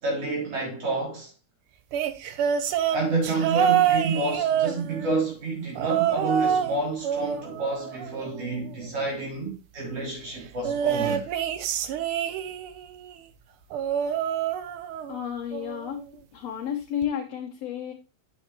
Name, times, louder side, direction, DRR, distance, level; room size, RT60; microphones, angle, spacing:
voice 1, 0.0-1.3 2.9-11.3, right 3 dB, 55° right, 4.4 m, -29 dB
'Because I'm tired let me sleep', 1.9-5.2 5.8-6.8 7.0-8.6 10.6-12.8 13.7-15.2 15.5-15.9 17.0-17.1, right 9 dB, 80° right, 1.2 m, -26 dB
voice 2, 15.1-16.0 16.3-17.9, left 9 dB, 65° left, 2.0 m, -31 dB
8.4 x 8.3 x 3.0 m
omnidirectional pair, 3.4 m